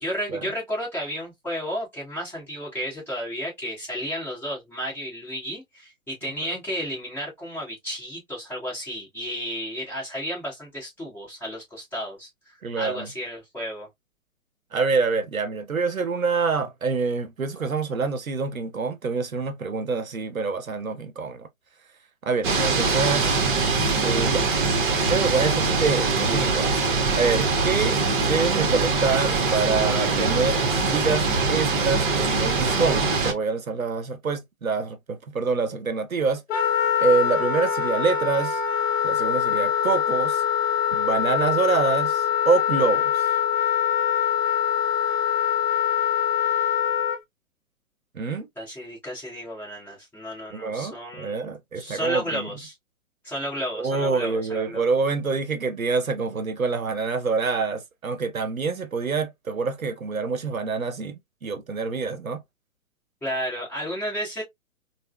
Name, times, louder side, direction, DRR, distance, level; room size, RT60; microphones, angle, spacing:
voice 1, 0.0-13.9 48.6-51.3 51.7-52.7 53.2-54.9 63.2-64.4, equal, 5° left, 1.0 m, -32 dB
voice 2, 12.6-13.1 14.7-21.5 22.2-23.3 24.0-24.5 25.1-26.8 27.1-36.4 36.7-38.6 39.0-40.4 40.9-43.3 48.1-48.5 50.5-52.5 53.7-62.4, right 4 dB, 85° right, 0.7 m, -26 dB
sound 1, 22.4-33.3, right 4 dB, 40° right, 0.7 m, -23 dB
Wind instrument woodwind instrument, 36.5-47.2, left 9 dB, 50° left, 0.7 m, -23 dB
3.5 x 2.0 x 2.2 m
figure-of-eight pair, 125°, 40 cm